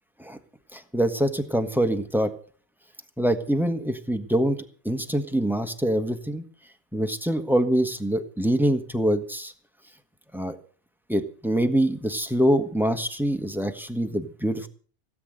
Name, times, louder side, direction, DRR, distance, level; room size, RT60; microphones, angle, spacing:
voice 1, 0.7-2.3 3.2-4.6 4.8-6.4 6.9-9.5 10.3-10.6 11.1-14.7, equal, ahead, 8 dB, 1.3 m, -24 dB
17.5 x 8.7 x 7.8 m, 0.43 s
omnidirectional pair, 1.2 m